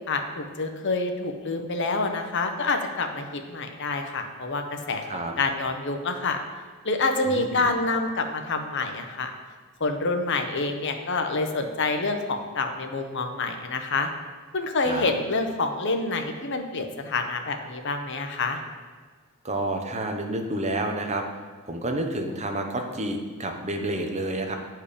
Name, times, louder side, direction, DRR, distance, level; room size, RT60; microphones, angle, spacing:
voice 1, 0.1-6.4 6.8-9.3 9.8-14.1 14.5-18.6, left 3 dB, 55° left, 6 dB, 0.8 m, -27 dB
voice 2, 7.2-7.7 14.8-15.1 19.4-21.2 21.7-24.5, right 1 dB, 30° right, 4 dB, 0.8 m, -29 dB
8.8 x 4.6 x 5.1 m, 1.5 s
head